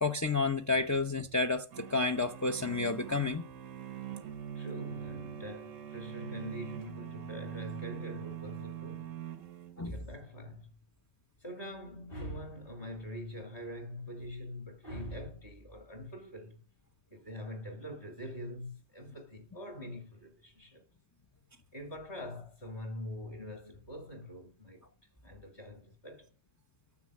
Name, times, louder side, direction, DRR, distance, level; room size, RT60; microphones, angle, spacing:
voice 1, 0.0-3.4 9.8-9.9, left 3 dB, 20° left, 0.4 m, -30 dB
sound 1, 1.7-10.0, right 10 dB, 90° right, 1.3 m, -43 dB
voice 2, 4.5-9.1 9.8-10.7 11.4-16.6 17.1-20.8 21.7-24.8 25.2-26.3, left 1 dB, 45° left, 2.6 m, -44 dB
9.7 x 7.1 x 7.4 m
omnidirectional pair, 1.3 m